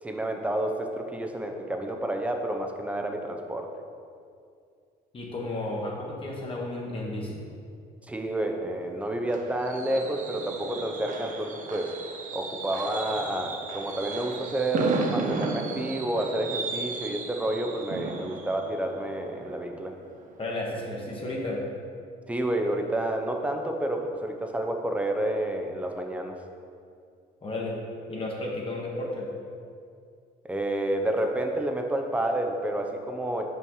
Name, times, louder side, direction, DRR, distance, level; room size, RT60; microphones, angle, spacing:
voice 1, 0.0-3.7 8.1-11.9 12.3-19.9 22.3-26.4 30.5-33.5, right 1 dB, 10° right, 3 dB, 0.7 m, -29 dB
voice 2, 5.1-7.4 20.4-21.6 27.4-27.8 28.1-29.3, left 2 dB, 30° left, -3 dB, 1.3 m, -33 dB
Fireworks, 8.6-20.3 20.7-21.0 21.2-21.3, right 4 dB, 50° right, 0.8 m, -35 dB
5.6 x 5.1 x 5.5 m, 2.4 s
cardioid pair, 110°, 17 cm